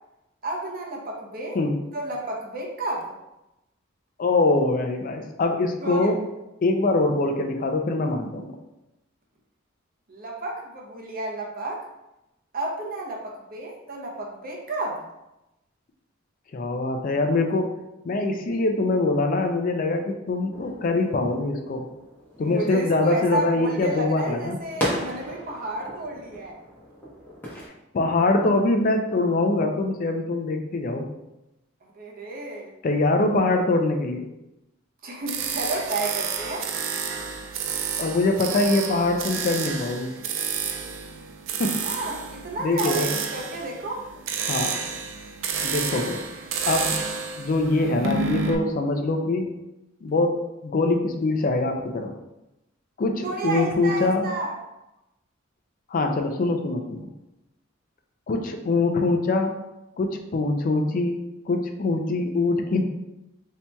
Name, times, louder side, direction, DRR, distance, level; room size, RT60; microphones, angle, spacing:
voice 1, 0.4-1.6 1.9-3.1 5.8-6.1 10.1-11.9 12.5-15.1 22.4-26.6 32.0-32.7 35.0-36.7 41.8-44.1 53.2-54.6, right 2 dB, 50° right, -1 dB, 0.7 m, -31 dB
voice 2, 4.2-6.2 6.6-8.5 16.5-17.8 18.0-21.9 22.4-24.6 27.9-31.1 32.8-34.3 38.0-40.1 41.6-41.8 42.6-43.1 44.4-44.8 45.6-46.2 46.7-47.0 47.4-49.5 50.0-52.1 53.0-54.3 55.9-57.1 58.3-59.5 60.0-61.2 61.5-62.9, left 2 dB, 45° left, 4 dB, 0.4 m, -23 dB
sound 1, 20.5-27.7, equal, 10° left, 0.8 m, -36 dB
sound 2, 35.3-48.5, right 6 dB, 75° right, 0.4 m, -30 dB
4.3 x 2.8 x 2.2 m, 0.93 s
head